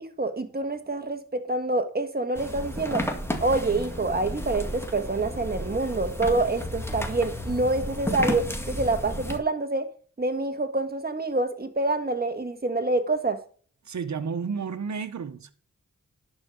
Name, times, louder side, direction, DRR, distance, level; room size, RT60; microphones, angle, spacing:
voice 1, 0.0-3.0 3.4-9.9 10.2-13.4, right 2 dB, 30° right, 1.5 m, -27 dB
sound 1, 2.4-9.4, equal, 10° left, 2.0 m, -32 dB
voice 2, 13.9-15.5, right 5 dB, 70° right, 1.1 m, -31 dB
11.0 x 5.0 x 7.0 m
cardioid pair, 60°, 30 cm